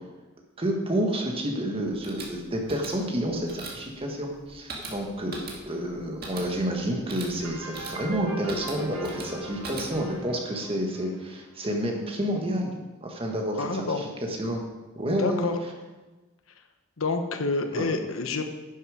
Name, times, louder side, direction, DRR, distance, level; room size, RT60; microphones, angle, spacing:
voice 1, 0.6-12.7 13.0-14.6 14.9-15.5 17.7-17.9, equal, 25° right, 1 dB, 1.5 m, -29 dB
sound 1, 1.8-10.2, right 3 dB, 45° right, 2.0 m, -42 dB
sound 2, 7.4-12.0, right 2 dB, 80° right, 2.0 m, -40 dB
voice 2, 13.6-14.0 15.2-15.6 17.0-18.5, left 3 dB, 75° left, 6 dB, 1.0 m, -28 dB
11.0 x 7.3 x 5.0 m, 1.2 s
head